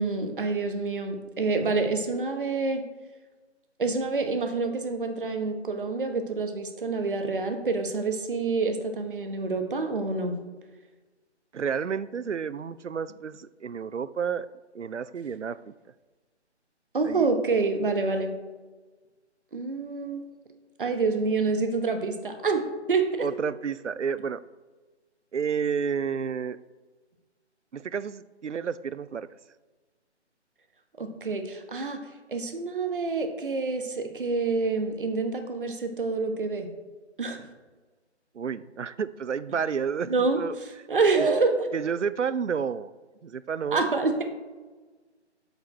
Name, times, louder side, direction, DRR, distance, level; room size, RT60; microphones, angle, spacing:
voice 1, 0.0-2.8 3.8-10.4 16.9-18.3 19.5-20.2 20.8-23.0 31.0-32.0 32.3-36.7 37.2-37.4 40.0-40.4 40.9-41.7 43.7-44.3, right 4 dB, 50° right, 6 dB, 1.1 m, -27 dB
voice 2, 11.5-14.5 14.7-15.7 17.0-17.3 23.2-24.4 25.3-26.6 27.7-29.3 38.3-40.1 40.3-40.6 41.2-41.3 41.7-42.9 43.2-43.9, right 6 dB, 85° right, 17 dB, 0.5 m, -30 dB
8.0 x 6.9 x 4.3 m, 1.3 s
figure-of-eight pair, 145°, 35 cm